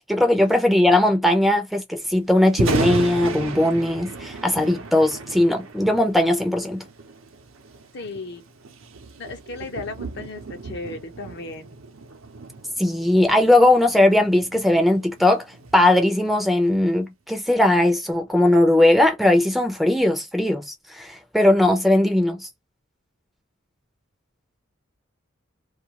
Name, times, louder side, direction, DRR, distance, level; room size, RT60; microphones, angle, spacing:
voice 1, 0.1-6.8 12.8-15.4 15.7-22.5, left 1 dB, ahead, 0.5 m, -19 dB
Thunder, 2.4-16.6, right 3 dB, 80° right, 0.7 m, -34 dB
voice 2, 7.9-8.4 9.2-11.7, left 3 dB, 55° left, 0.8 m, -35 dB
2.4 x 2.3 x 2.9 m
head